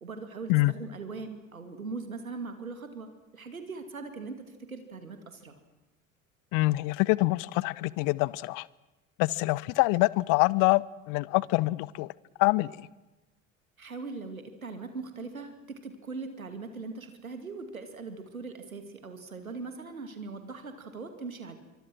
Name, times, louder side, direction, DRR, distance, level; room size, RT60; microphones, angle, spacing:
voice 1, 0.0-5.6 13.8-21.5, right 4 dB, 85° right, 2.4 m, -40 dB
voice 2, 6.5-8.7 9.2-12.1 12.4-12.9, left 22 dB, 50° left, 0.8 m, -25 dB
26.5 x 24.5 x 6.2 m
figure-of-eight pair, 60°, 41 cm